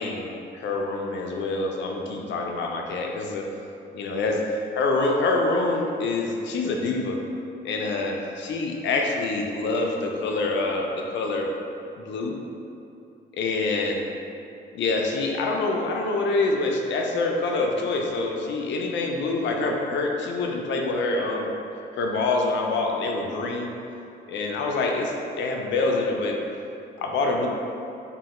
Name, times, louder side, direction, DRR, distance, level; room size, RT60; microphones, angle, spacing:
voice 1, 0.0-3.5 3.9-4.4 4.7-7.2 7.6-11.5 12.0-12.4 13.3-14.1 14.7-21.5 21.9-23.7 24.3-26.4 27.0-27.5, left 3 dB, 70° left, 0 dB, 0.4 m, -26 dB
3.1 x 2.2 x 2.9 m, 2.8 s
cardioid pair, 90°, 20 cm